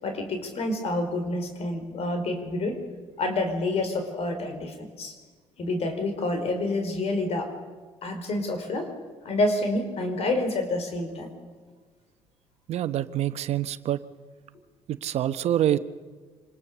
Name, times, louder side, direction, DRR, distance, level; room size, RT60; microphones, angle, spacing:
voice 1, 0.0-2.8 3.2-5.1 5.6-7.5 8.0-8.9 9.2-11.3, left 2 dB, 60° left, 6 dB, 4.9 m, -28 dB
voice 2, 12.7-14.0 14.9-15.8, right 12 dB, 70° right, 12 dB, 1.1 m, -26 dB
26.5 x 20.0 x 6.9 m, 1.5 s
cardioid pair, 80°, 12 cm